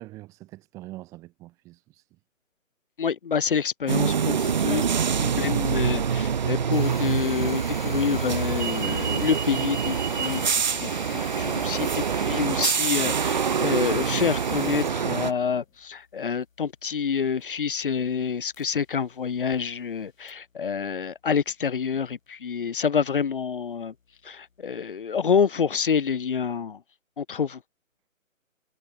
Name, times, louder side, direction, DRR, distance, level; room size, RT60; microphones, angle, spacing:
voice 1, 0.0-2.1, right 18 dB, 10° right, 2.0 m, -44 dB
voice 2, 3.0-4.9 5.2-23.9 24.2-26.8 27.2-27.6, left 6 dB, 40° left, 1.7 m, -27 dB
sound 1, 3.9-15.3, right 7 dB, 35° right, 1.6 m, -25 dB
sound 2, 6.7-19.0 19.3-19.6 20.3-20.4, left 5 dB, 75° left, 2.6 m, -44 dB
sound 3, 9.9-15.9, left 18 dB, 10° left, 6.8 m, -52 dB
hypercardioid pair, 170°, 40 cm